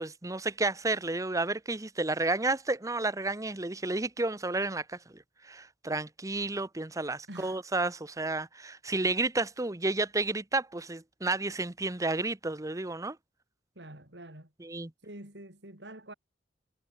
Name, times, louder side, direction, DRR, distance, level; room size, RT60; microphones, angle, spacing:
voice 1, 0.0-13.2 14.6-14.9, right 2 dB, 20° right, 0.9 m, -31 dB
voice 2, 7.3-7.6 9.0-9.1 13.8-14.5 15.0-16.1, right 1 dB, 70° right, 5.6 m, -46 dB
head